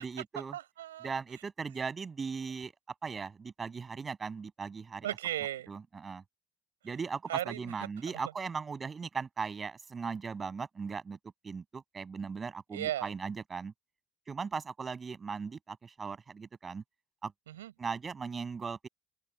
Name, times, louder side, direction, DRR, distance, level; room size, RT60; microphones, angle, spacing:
voice 1, 0.0-0.5 1.0-2.7 3.0-5.1 5.7-6.2 6.8-11.2 11.4-13.7 14.3-16.8 17.2-17.3 17.8-18.9, right 5 dB, 30° right, 6.6 m, -38 dB
voice 2, 0.5-1.1 5.0-5.7 7.3-7.7 12.7-13.1 17.5-17.7, right 12 dB, 80° right, 6.8 m, -36 dB
open air
figure-of-eight pair, 60°, 0 cm